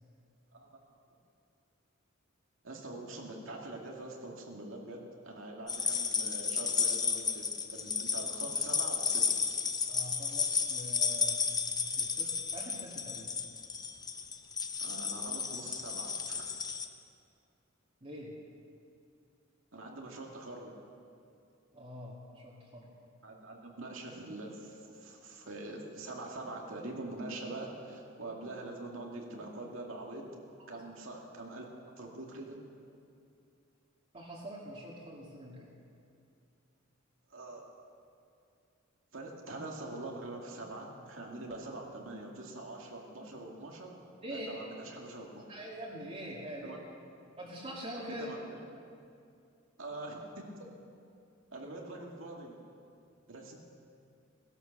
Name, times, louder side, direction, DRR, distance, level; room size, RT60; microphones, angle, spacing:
voice 1, 2.6-9.4 14.8-16.4 19.7-20.7 23.2-30.3 30.7-31.7 32.0-32.6 37.3-37.7 39.1-44.0 44.3-45.5 46.6-46.8 48.2-48.8 49.8-50.5 51.5-52.6 53.3-53.6, right 2 dB, 80° right, -1 dB, 2.3 m, -44 dB
sound 1, 5.7-16.9, left 5 dB, 20° left, 0.7 m, -33 dB
voice 2, 9.9-11.6 11.8-13.5 18.0-18.3 21.7-22.9 30.7-30.8 34.1-35.7 44.2-44.6 45.5-46.8 47.4-48.3, equal, 30° right, -6 dB, 2.2 m, -44 dB
17.5 x 11.5 x 6.9 m, 2.5 s
head